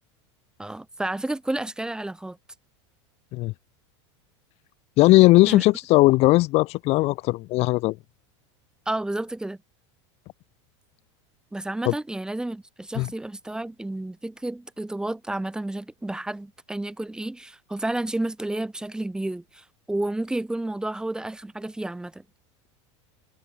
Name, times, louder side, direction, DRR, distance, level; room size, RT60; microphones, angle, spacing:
voice 1, 0.6-2.4 5.5-5.6 8.8-9.6 11.5-22.2, right 1 dB, 5° right, 1.5 m, -31 dB
voice 2, 5.0-8.0 11.9-12.0 13.0-13.1, left 20 dB, 45° left, 1.1 m, -18 dB
supercardioid pair, 140°, 15 cm